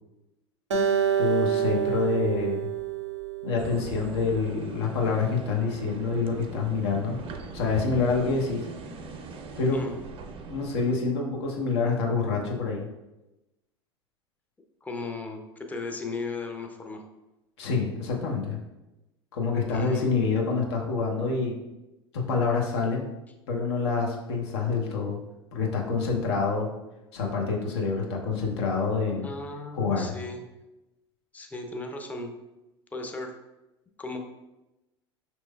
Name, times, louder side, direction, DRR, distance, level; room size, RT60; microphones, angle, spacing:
Acoustic guitar, 0.7-4.1, right 8 dB, 85° right, 0.5 m, -27 dB
voice 1, 1.2-2.7 3.4-7.2 7.5-8.6 9.6-9.8 10.5-12.9 17.6-18.6 19.3-21.5 22.1-23.1 23.5-25.2 25.5-26.7 27.1-29.3 29.7-30.1, left 4 dB, 70° left, -1 dB, 0.8 m, -27 dB
sound 1, 3.6-11.0, right 4 dB, 40° right, 0.5 m, -41 dB
voice 2, 9.7-10.0 14.8-17.0 19.7-20.0 29.2-30.4 31.3-32.3 32.9-33.3 34.0-34.2, left 3 dB, 10° left, 3 dB, 0.6 m, -36 dB
5.3 x 3.0 x 2.3 m, 0.99 s
figure-of-eight pair, 75°, 15 cm